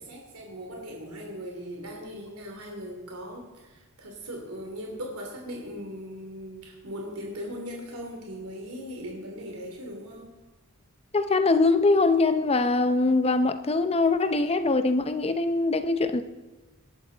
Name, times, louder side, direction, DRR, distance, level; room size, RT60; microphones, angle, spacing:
voice 1, 0.0-10.3, equal, 85° right, 2.9 m, -39 dB
voice 2, 11.1-16.2, left 3 dB, 30° left, 0.7 m, -23 dB
20.0 x 12.0 x 4.0 m
head